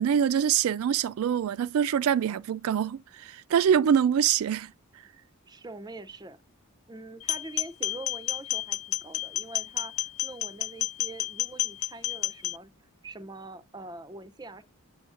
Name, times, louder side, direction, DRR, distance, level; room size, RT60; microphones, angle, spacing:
voice 1, 0.0-4.7, right 8 dB, 75° right, 0.3 m, -24 dB
voice 2, 5.5-6.4 6.9-12.7 13.0-14.6, right 2 dB, 20° right, 0.5 m, -44 dB
sound 1, 7.2-12.6, left 14 dB, 70° left, 0.3 m, -31 dB
7.6 x 7.0 x 2.5 m
head